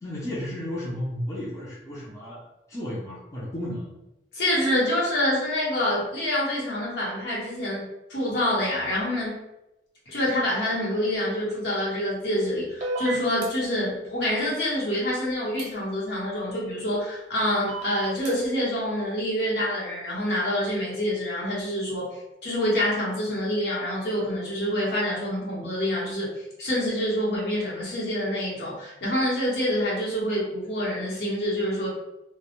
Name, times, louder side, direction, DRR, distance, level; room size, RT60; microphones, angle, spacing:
voice 1, 0.0-3.9, left 1 dB, 15° left, -8 dB, 0.4 m, -33 dB
voice 2, 4.3-9.4 10.1-26.3 26.6-31.9, left 1 dB, 65° left, -6 dB, 0.9 m, -26 dB
sound 1, 12.8-13.5 15.6-15.7 17.7-18.3, right 3 dB, 40° right, 0.6 m, -31 dB
2.1 x 2.0 x 2.9 m, 0.93 s
head